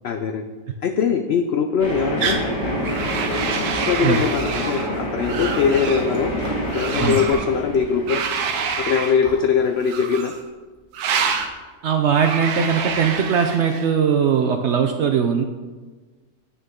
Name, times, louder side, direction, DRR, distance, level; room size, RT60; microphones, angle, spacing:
voice 1, 0.0-0.4 0.8-2.4 3.5-6.3 6.7-8.2 8.8-10.3, left 6 dB, 80° left, 6 dB, 0.5 m, -21 dB
sound 1, 1.8-9.5, equal, 45° left, 2.4 m, -27 dB
sound 2, 2.2-2.5 2.8-4.9 5.2-6.1 6.7-7.5 8.1-9.2 9.8-10.4 10.9-11.5 12.1-13.9, right 6 dB, 85° right, 1.3 m, -27 dB
Whispering, 5.4-12.0, right 1 dB, 30° right, 1.7 m, -44 dB
voice 2, 11.8-15.4, right 7 dB, 70° right, 5 dB, 0.7 m, -20 dB
8.9 x 6.5 x 3.7 m, 1.3 s
omnidirectional pair, 1.6 m